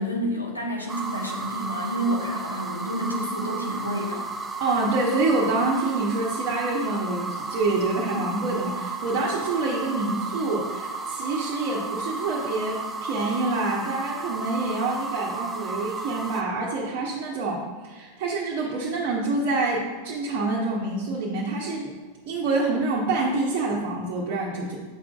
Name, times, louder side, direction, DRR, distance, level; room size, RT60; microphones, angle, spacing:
voice 1, 0.0-4.3, equal, 85° left, -1 dB, 1.0 m, -29 dB
sound 1, 0.9-16.4, right 3 dB, 10° right, 0.6 m, -33 dB
voice 2, 4.6-21.9 22.3-24.8, right 3 dB, 45° right, -4 dB, 1.0 m, -26 dB
8.2 x 6.0 x 2.4 m, 1.4 s
figure-of-eight pair, 90°, 0 cm